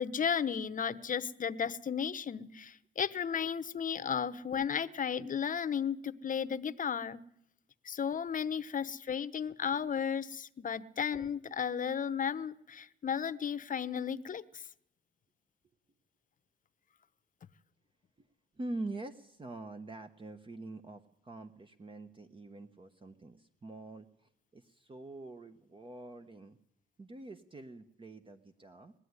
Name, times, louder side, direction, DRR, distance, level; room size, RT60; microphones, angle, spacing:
voice 1, 0.0-7.2 7.8-14.6, left 7 dB, 40° left, 12 dB, 1.0 m, -34 dB
voice 2, 18.6-26.6 27.0-28.9, right 2 dB, 25° right, 7 dB, 1.1 m, -45 dB
20.5 x 13.0 x 9.7 m, 0.74 s
cardioid pair, 90°, 20 cm